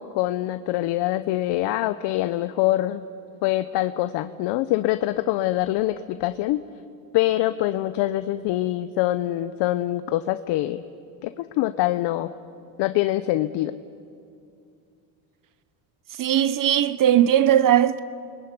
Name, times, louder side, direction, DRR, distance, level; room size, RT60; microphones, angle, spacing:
voice 1, 0.0-3.0 3.4-6.6 7.1-10.8 11.2-12.3 12.8-13.7, left 15 dB, 65° left, 0.9 m, -24 dB
voice 2, 16.2-18.0, right 11 dB, 45° right, 1.0 m, -18 dB
29.5 x 20.5 x 9.7 m
supercardioid pair, 105°, 44 cm